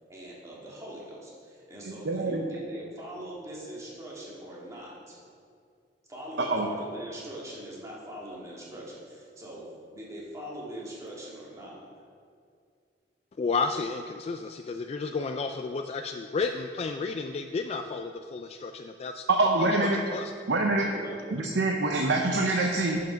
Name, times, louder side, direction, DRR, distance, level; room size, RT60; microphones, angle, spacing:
voice 1, 0.1-5.2 6.1-11.9 20.9-21.1, right 1 dB, 20° right, -5 dB, 2.1 m, -42 dB
voice 2, 1.8-2.4 6.5-6.7 19.3-20.0 20.5-20.9 21.3-23.0, right 2 dB, 75° right, 1 dB, 0.7 m, -25 dB
voice 3, 13.4-19.3 19.9-20.3, left 4 dB, 35° left, 6 dB, 0.3 m, -32 dB
10.5 x 5.7 x 5.1 m, 2.3 s
head